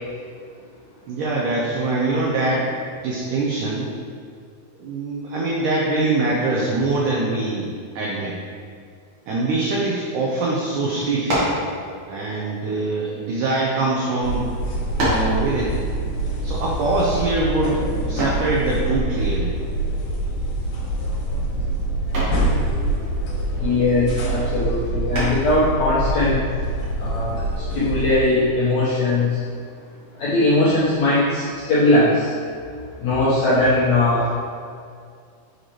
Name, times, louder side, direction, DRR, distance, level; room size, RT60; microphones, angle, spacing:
voice 1, 1.1-3.9 4.8-8.4 9.3-11.6 12.1-14.5 15.0-15.8 16.4-19.5, right 2 dB, 85° right, -4 dB, 1.8 m, -23 dB
sound 1, 11.2-11.7 12.6-13.8 14.4-14.5 15.0-15.4 18.2-18.5 20.4-20.8 21.2-21.5 22.1-22.5 25.1-25.6, equal, 55° right, 1.6 m, -25 dB
sound 2, 14.2-28.1, right 1 dB, 70° left, 2.3 m, -25 dB
voice 2, 23.6-26.4 27.0-29.4 30.2-32.3 33.0-34.3, left 2 dB, 85° left, -10 dB, 1.6 m, -20 dB
6.3 x 5.2 x 2.9 m, 2.2 s
omnidirectional pair, 4.6 m